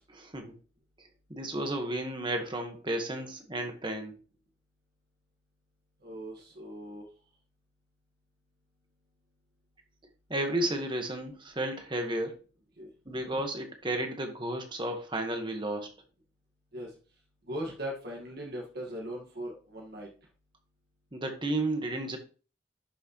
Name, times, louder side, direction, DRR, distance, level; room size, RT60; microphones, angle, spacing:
voice 1, 0.1-0.5 1.3-4.1 10.3-12.3 13.0-15.9 21.1-22.2, right 1 dB, 25° right, 4 dB, 1.6 m, -33 dB
voice 2, 6.0-7.0 12.8-12.9 16.7-16.9 17.5-20.1, equal, 50° right, -2 dB, 2.0 m, -39 dB
11.5 x 6.4 x 3.2 m, 0.37 s
head